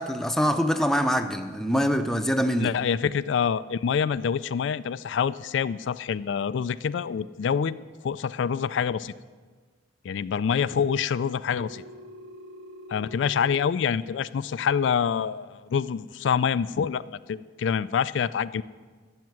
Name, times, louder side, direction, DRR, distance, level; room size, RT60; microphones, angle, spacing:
voice 1, 0.0-2.7, equal, ahead, 6 dB, 0.7 m, -24 dB
voice 2, 2.6-7.8 8.0-9.1 10.0-11.8 12.9-18.6, left 7 dB, 70° left, 15 dB, 0.3 m, -26 dB
Telephone, 11.5-13.5, equal, 80° right, 3.5 m, -45 dB
12.0 x 7.4 x 9.4 m, 1.5 s
head